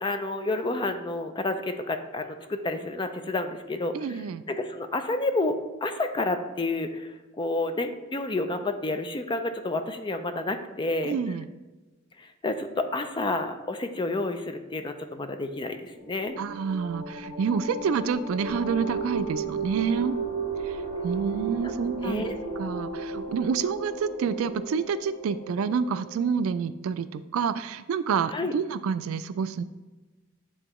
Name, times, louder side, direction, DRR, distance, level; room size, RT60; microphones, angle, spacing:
voice 1, 0.0-11.2 12.2-16.4 21.6-21.7 22.0-22.4 28.3-28.5, left 2 dB, 20° left, 8 dB, 0.4 m, -30 dB
voice 2, 3.9-4.4 11.0-11.5 16.4-20.2 20.6-20.8 21.0-22.3 22.6-29.6, right 6 dB, 75° right, 13 dB, 0.3 m, -28 dB
sound 1, 16.0-26.2, right 4 dB, 40° right, 1.7 m, -34 dB
8.8 x 3.7 x 3.0 m, 1.2 s
head